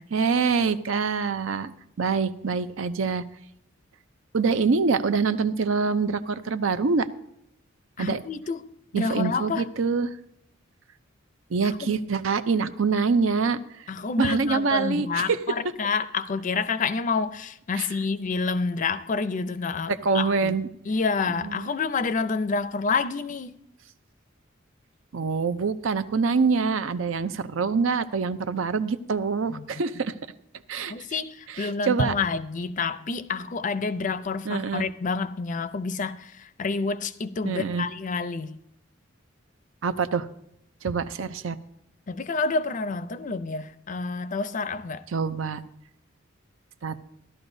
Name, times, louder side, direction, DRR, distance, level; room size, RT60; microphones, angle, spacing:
voice 1, 0.1-1.7 2.0-3.2 4.3-7.1 8.0-8.2 8.9-10.2 11.5-13.9 14.2-15.4 17.8-17.9 19.9-20.7 21.3-21.7 25.1-30.1 30.7-30.9 31.5-32.1 34.5-34.9 37.4-37.9 39.8-40.3 40.8-41.6 45.1-45.6 46.8-47.0, right 5 dB, 80° right, 0.6 m, -25 dB
voice 2, 8.0-8.6 8.9-9.7 11.6-11.9 13.9-20.6 20.9-23.6 29.5-29.7 30.9-38.6 42.1-45.1, left 4 dB, 40° left, 0.5 m, -28 dB
15.5 x 12.0 x 2.7 m
head